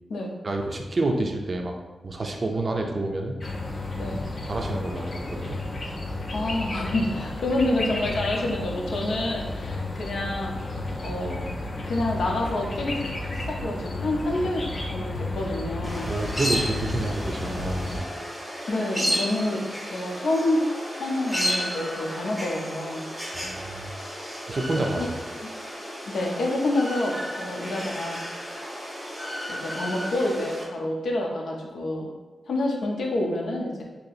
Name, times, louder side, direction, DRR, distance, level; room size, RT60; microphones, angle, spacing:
voice 1, 0.4-1.7 2.0-3.4 4.1-4.2 4.5-5.6 9.8-10.0 16.1-18.1 23.3-23.9 24.5-25.2, right 2 dB, 35° right, 3 dB, 0.4 m, -29 dB
sound 1, 3.4-18.0, left 2 dB, 40° left, 0.5 m, -32 dB
voice 2, 6.3-10.6 11.0-11.5 11.9-13.0 13.3-16.1 18.7-20.6 21.0-23.1 24.7-25.1 25.4-25.5 26.1-28.3 29.5-32.1 32.5-33.8, left 1 dB, 80° left, 0 dB, 0.6 m, -28 dB
sound 2, 15.8-30.6, equal, ahead, 0.9 m, -33 dB
2.8 x 2.8 x 4.1 m, 1.2 s
wide cardioid pair, 145°, 0 cm